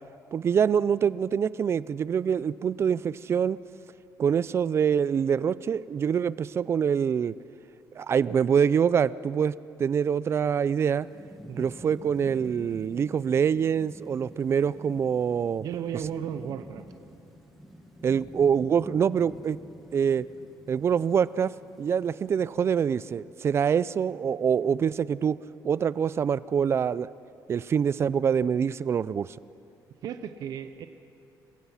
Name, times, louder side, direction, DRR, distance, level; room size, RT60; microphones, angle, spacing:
voice 1, 0.3-3.6 4.2-7.3 8.0-9.5 9.8-11.1 11.6-15.6 18.0-19.6 19.9-20.3 20.7-21.5 21.8-25.4 25.6-27.1 27.5-29.3, right 7 dB, 35° right, 19 dB, 0.4 m, -25 dB
Thunderstorm / Rain, 10.7-23.0, equal, ahead, 2.0 m, -48 dB
voice 2, 15.6-16.8 30.0-30.9, right 9 dB, 60° right, 9 dB, 0.8 m, -35 dB
28.5 x 16.0 x 5.8 m, 2.6 s
cardioid pair, 135°, 7 cm